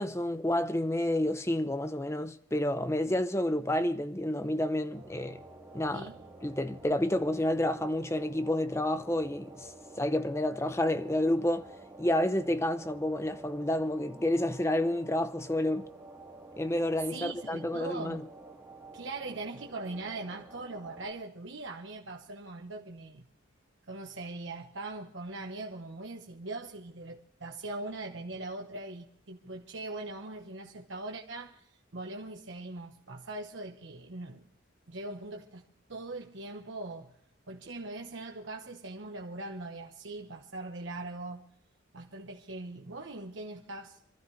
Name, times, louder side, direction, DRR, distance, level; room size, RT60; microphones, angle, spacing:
voice 1, 0.0-5.4 5.7-6.1 6.4-9.7 10.0-11.7 12.0-15.8 16.6-18.2, left 1 dB, 15° left, 0.6 m, -29 dB
sound 1, 4.9-21.1, right 2 dB, 10° right, 3.2 m, -50 dB
voice 2, 17.1-18.2 18.9-23.3 23.8-34.4 34.9-35.6 35.9-37.2 37.5-41.4 41.9-44.0, right 2 dB, 70° right, 1.1 m, -41 dB
26.5 x 12.5 x 3.3 m
head